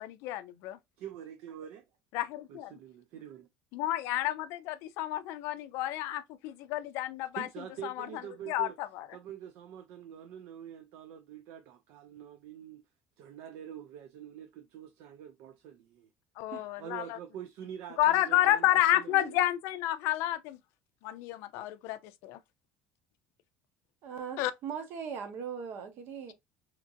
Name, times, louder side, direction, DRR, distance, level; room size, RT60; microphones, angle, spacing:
voice 1, 0.0-0.8 2.1-2.8 3.7-7.5 7.8-8.2 8.5-9.1 16.4-17.2 18.0-20.6 21.0-22.4 24.4-24.5, left 14 dB, 75° left, 0.3 m, -30 dB
voice 2, 1.0-1.8 2.5-3.5 7.3-8.7 9.1-12.8 13.2-16.1 16.8-19.4, right 10 dB, 75° right, 0.4 m, -45 dB
voice 3, 24.0-26.3, right 7 dB, 55° right, 0.7 m, -39 dB
2.9 x 2.5 x 2.5 m
cardioid pair, 135°, 4 cm